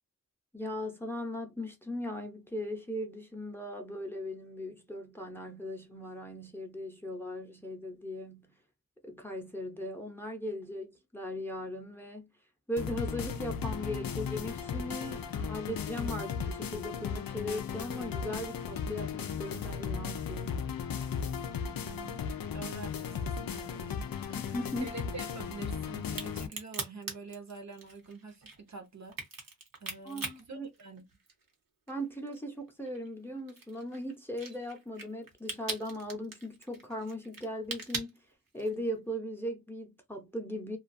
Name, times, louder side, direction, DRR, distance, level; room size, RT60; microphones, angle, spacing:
voice 1, 0.5-8.6 9.0-12.3 12.7-20.7 24.4-24.9 30.0-30.7 31.9-38.1 38.5-40.8, equal, 5° left, 0.6 m, -38 dB
sound 1, 12.8-26.5, left 6 dB, 90° left, 0.5 m, -36 dB
voice 2, 21.5-22.3 22.5-29.2 29.8-31.1, right 4 dB, 55° right, 0.7 m, -47 dB
Crack, 26.0-31.5 31.9-38.9, right 4 dB, 80° right, 1.0 m, -41 dB
2.4 x 2.3 x 2.5 m
wide cardioid pair, 75°, 34 cm